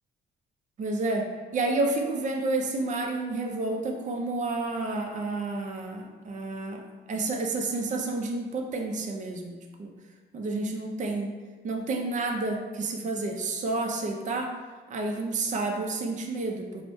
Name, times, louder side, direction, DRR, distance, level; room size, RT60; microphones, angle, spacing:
voice 1, 0.8-6.8 7.1-9.9 10.3-11.3 11.6-14.5 14.9-16.8, right 2 dB, 40° right, 2 dB, 0.5 m, -30 dB
4.3 x 2.1 x 2.9 m, 1.3 s
cardioid pair, 90°, 20 cm